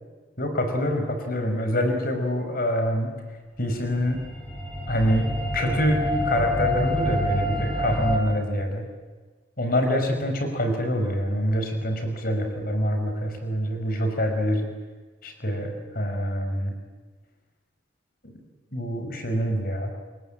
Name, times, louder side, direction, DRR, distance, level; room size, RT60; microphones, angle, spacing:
voice 1, 0.4-3.1 3.6-4.2 4.9-8.8 9.6-14.6 15.2-16.7 18.2-18.3 18.7-19.9, equal, 50° left, 5 dB, 4.8 m, -25 dB
sound 1, 3.8-8.2, equal, 5° left, 4.6 m, -27 dB
27.5 x 22.5 x 9.0 m, 1.4 s
head